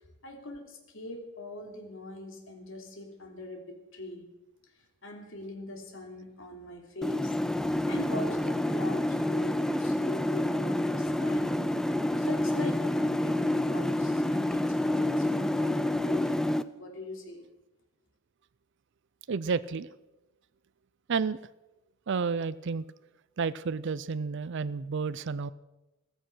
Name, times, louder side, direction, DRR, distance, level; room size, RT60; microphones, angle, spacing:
voice 1, 0.2-4.3 5.0-7.4 7.9-11.6 12.2-16.5 16.7-17.5, left 2 dB, 65° left, 3 dB, 3.1 m, -41 dB
sound 1, 7.0-16.6, left 1 dB, 5° left, 0.4 m, -28 dB
voice 2, 19.3-19.9 21.1-21.4 22.1-22.8 23.4-25.5, right 5 dB, 55° right, 16 dB, 0.5 m, -31 dB
15.0 x 14.5 x 6.1 m, 1.0 s
head